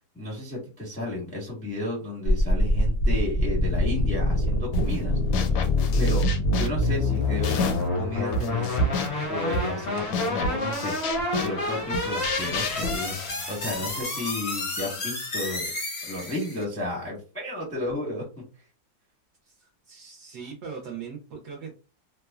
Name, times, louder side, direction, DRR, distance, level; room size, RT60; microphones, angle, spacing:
voice 1, 0.1-5.2 6.0-6.3 6.6-8.7 9.3-10.9 11.4-15.7 16.0-18.2, left 1 dB, 10° left, -3 dB, 0.5 m, -33 dB
sound 1, 2.2-16.6, left 2 dB, 60° left, 0.6 m, -27 dB
sound 2, 3.6-4.7 5.0-5.9 7.4-7.5 8.1-8.3, left 1 dB, 50° right, 0.8 m, -49 dB
sound 3, 4.7-5.0 5.3-8.0 8.3-14.0, left 2 dB, 80° left, 1.3 m, -30 dB
voice 2, 19.4-21.7, right 6 dB, 70° right, 0 dB, 1.0 m, -40 dB
3.1 x 2.1 x 2.2 m, 0.33 s
omnidirectional pair, 2.2 m